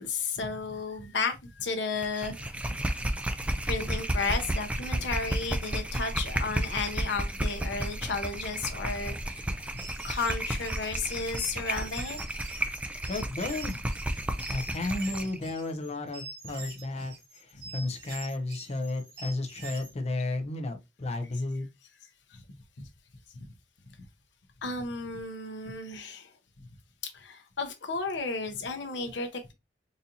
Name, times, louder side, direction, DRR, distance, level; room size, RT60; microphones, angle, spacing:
voice 1, 0.0-3.1 3.5-9.5 10.0-12.2 17.5-17.6 22.3-22.4 22.8-22.9 24.6-26.3 26.6-26.7 27.0-29.5, left 4 dB, 75° left, 0.8 m, -33 dB
sound 1, 2.0-15.4, right 1 dB, 5° right, 0.3 m, -32 dB
sound 2, 9.7-19.9, right 3 dB, 60° right, 1.4 m, -45 dB
voice 2, 13.1-13.8 14.5-17.1 17.7-21.7, left 2 dB, 35° left, 0.6 m, -33 dB
4.0 x 2.6 x 2.7 m
head